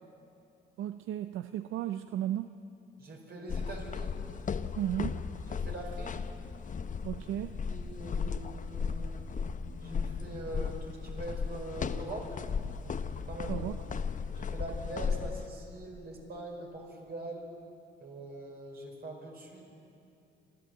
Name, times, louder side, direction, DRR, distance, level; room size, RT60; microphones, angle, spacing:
voice 1, 0.8-2.5 4.8-5.2 7.0-7.6 13.5-13.8, right 12 dB, 80° right, 10 dB, 0.6 m, -34 dB
voice 2, 3.0-4.2 5.5-6.2 7.2-7.3 7.7-9.3 9.8-12.3 12.8-13.7 14.3-17.5 18.0-19.6, right 2 dB, 55° right, 0 dB, 5.0 m, -43 dB
sound 1, 3.5-15.5, left 6 dB, 40° left, 0.8 m, -36 dB
28.5 x 13.0 x 8.0 m, 2.7 s
cardioid pair, 90°, 20 cm